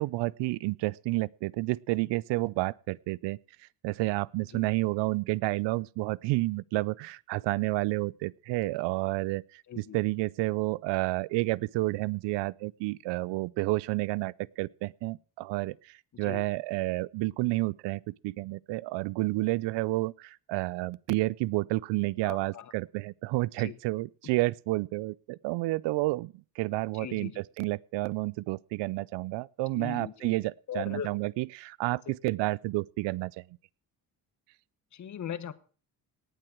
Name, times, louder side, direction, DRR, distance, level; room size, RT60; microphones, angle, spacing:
voice 1, 0.0-3.4 3.8-33.4, right 21 dB, 90° right, 0.5 m, -30 dB
voice 2, 9.7-10.0 16.2-16.4 22.2-22.7 23.6-23.8 27.0-27.4 29.7-30.3 30.7-31.1 32.1-32.2 34.9-35.5, left 9 dB, 45° left, 1.2 m, -39 dB
18.0 x 7.8 x 6.0 m
cardioid pair, 120°, 41 cm